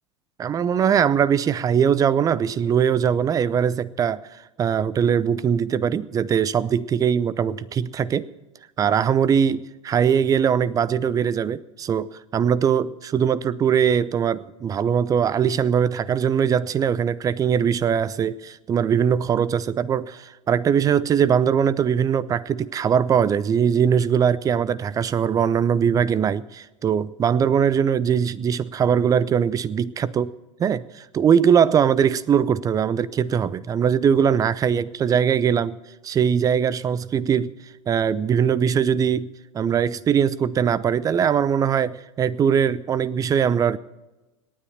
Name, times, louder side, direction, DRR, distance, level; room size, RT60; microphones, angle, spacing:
voice 1, 0.4-4.2 4.6-8.3 8.8-30.3 30.6-35.8 36.0-37.5 37.9-39.3 39.5-43.8, right 8 dB, 20° right, 0.6 m, -21 dB
27.0 x 9.9 x 4.3 m
figure-of-eight pair, 85°, 16 cm